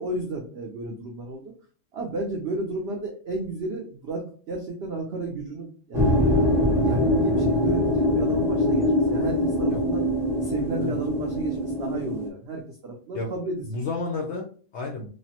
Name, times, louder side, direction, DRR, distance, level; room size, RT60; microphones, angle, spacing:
voice 1, 0.0-1.5 1.9-10.1 10.4-13.6, right 3 dB, 75° right, 0 dB, 0.6 m, -33 dB
sound 1, 5.9-12.3, left 1 dB, 5° right, 0.3 m, -23 dB
voice 2, 13.6-15.1, left 3 dB, 65° left, -1 dB, 0.7 m, -31 dB
3.2 x 2.1 x 2.7 m, 0.42 s
omnidirectional pair, 1.7 m